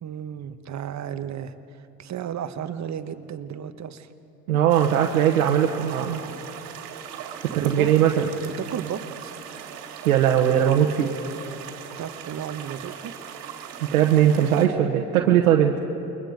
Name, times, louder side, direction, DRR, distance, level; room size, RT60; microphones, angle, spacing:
voice 1, 0.0-4.1 7.5-7.9 8.6-9.3 12.0-13.1, right 9 dB, 40° right, 10 dB, 1.3 m, -33 dB
voice 2, 4.5-6.2 7.4-8.3 10.0-11.1 13.9-15.8, right 10 dB, 85° right, 0 dB, 1.3 m, -19 dB
sound 1, 4.7-14.7, right 8 dB, 55° right, 2.5 m, -39 dB
29.0 x 22.5 x 5.2 m, 2.9 s
hypercardioid pair, 75°, 42 cm